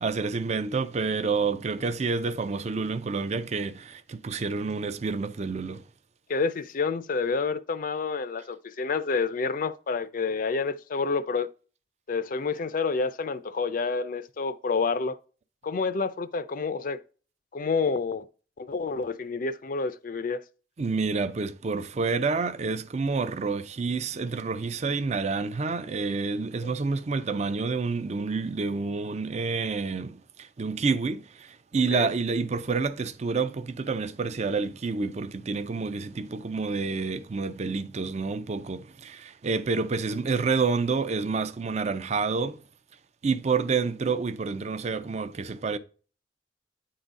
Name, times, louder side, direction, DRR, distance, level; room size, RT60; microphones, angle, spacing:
voice 1, 0.0-5.8 20.8-42.6 43.2-45.8, right 4 dB, 40° right, 0.5 m, -28 dB
voice 2, 6.3-11.5 12.1-15.2 15.6-17.0 17.5-18.2 18.6-20.4 26.6-26.7 31.9-32.1, left 4 dB, 50° left, 0.5 m, -28 dB
8.7 x 3.8 x 4.0 m
head